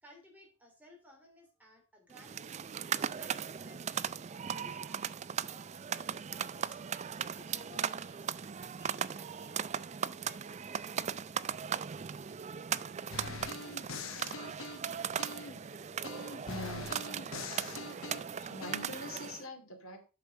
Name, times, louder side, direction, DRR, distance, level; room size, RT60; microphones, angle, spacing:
voice 1, 0.0-2.7 3.1-7.0 7.3-9.6 9.9-11.0, left 1 dB, 10° right, 3.3 m, -58 dB
sound 1, 2.1-19.4, right 8 dB, 35° right, 0.4 m, -38 dB
sound 2, 13.1-15.6 16.0-18.9, left 4 dB, 70° left, 0.9 m, -43 dB
voice 2, 16.4-17.0 18.4-20.0, left 2 dB, 90° left, 2.7 m, -43 dB
8.6 x 6.1 x 5.2 m
head